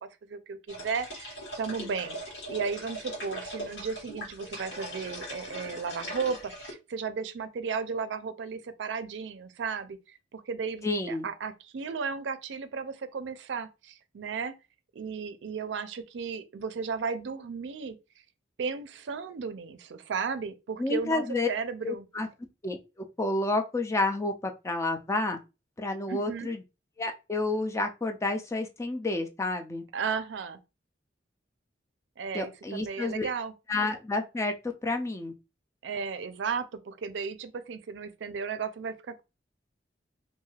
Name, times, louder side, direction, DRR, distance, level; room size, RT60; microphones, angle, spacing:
voice 1, 0.0-14.5 15.0-18.0 18.6-22.1 26.1-26.5 29.9-30.6 32.2-33.5 35.8-39.2, right 5 dB, 85° right, 0.4 m, -35 dB
sound 1, 0.7-6.7, equal, 80° left, 1.3 m, -40 dB
voice 2, 10.8-11.3 20.8-21.5 21.8-22.3 22.6-22.8 23.2-25.4 25.8-26.6 27.0-29.8 32.3-33.3 33.7-34.5 34.8-35.3, left 2 dB, 15° left, 0.4 m, -30 dB
3.2 x 2.6 x 2.3 m
head